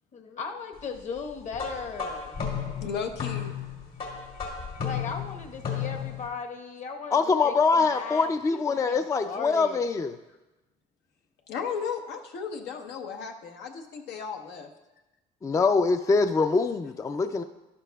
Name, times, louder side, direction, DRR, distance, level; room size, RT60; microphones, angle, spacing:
voice 1, 0.1-2.4 4.8-9.8, left 5 dB, 45° left, 4 dB, 1.1 m, -37 dB
sound 1, 1.5-6.3, left 7 dB, 65° left, 2.3 m, -34 dB
voice 2, 2.8-3.5 11.5-14.7, left 6 dB, 90° left, 3 dB, 1.0 m, -35 dB
voice 3, 7.1-10.1 15.4-17.4, left 4 dB, 20° left, 9 dB, 0.3 m, -24 dB
11.5 x 11.0 x 2.3 m, 1.0 s
cardioid pair, 110°, 17 cm